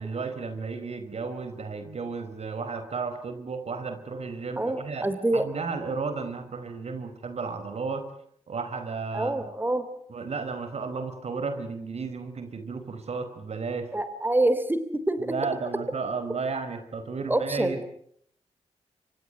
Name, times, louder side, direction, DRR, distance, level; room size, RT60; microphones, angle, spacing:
voice 1, 0.0-5.1 5.3-8.1 8.5-9.4 10.1-13.9 15.2-17.8, right 4 dB, 60° right, 10 dB, 4.6 m, -33 dB
voice 2, 4.6-5.5 9.1-9.9 13.9-14.8 15.1-15.3 17.3-17.8, right 1 dB, 15° right, 11 dB, 3.4 m, -26 dB
27.5 x 24.0 x 7.9 m, 0.67 s
cardioid pair, 55°, 12 cm